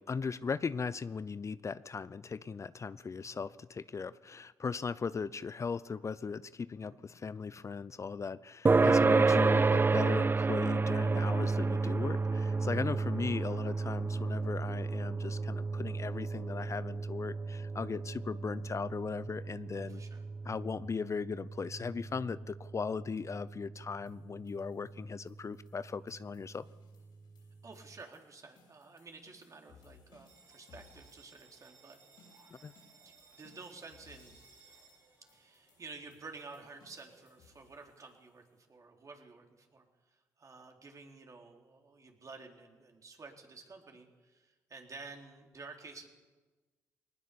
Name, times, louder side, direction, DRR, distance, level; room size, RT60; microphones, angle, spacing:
voice 1, 0.0-20.0 20.4-26.7 32.6-32.7, left 5 dB, 40° left, 17 dB, 0.6 m, -38 dB
sound 1, 8.6-23.6, right 4 dB, 25° right, 0.5 m, -31 dB
voice 2, 19.8-20.2 27.6-32.0 33.0-34.4 35.3-38.4 38.7-46.1, right 4 dB, 45° right, 2 dB, 3.8 m, -51 dB
sound 2, 24.1-38.6, left 5 dB, 75° left, 6.9 m, -65 dB
Bell, 30.2-37.2, right 5 dB, 90° right, 6.2 m, -62 dB
20.5 x 19.0 x 7.0 m, 1.3 s
hypercardioid pair, 45°, 8 cm